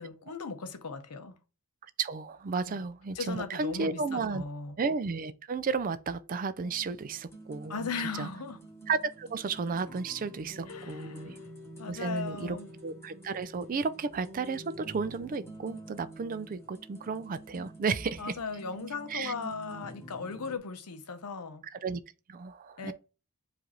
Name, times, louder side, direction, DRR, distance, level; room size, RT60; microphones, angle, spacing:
voice 1, 0.0-1.4 2.7-2.8 3.1-4.8 7.7-8.6 10.7-11.5 11.8-12.7 18.2-21.7 22.8-22.9, left 4 dB, 85° left, 0.7 m, -38 dB
voice 2, 1.8-4.4 4.8-7.9 8.1-8.3 8.9-11.4 11.9-12.6 12.8-18.3 19.1-19.3 21.7-22.0 22.3-22.9, right 4 dB, 40° right, 0.4 m, -33 dB
sound 1, 6.6-20.6, right 1 dB, 10° left, 1.0 m, -48 dB
4.8 x 2.6 x 4.2 m
head